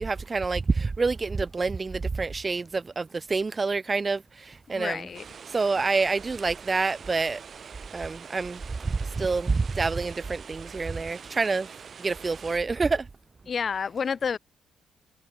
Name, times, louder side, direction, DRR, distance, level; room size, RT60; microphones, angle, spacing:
voice 1, 0.0-5.1 5.5-7.4 7.9-11.7 12.0-13.1, right 4 dB, 30° right, 0.3 m, -27 dB
voice 2, 4.7-5.2 13.5-14.4, left 6 dB, 45° left, 0.5 m, -29 dB
sound 1, 5.1-12.6, right 6 dB, 50° right, 2.2 m, -45 dB
cardioid pair, 90°, 0 cm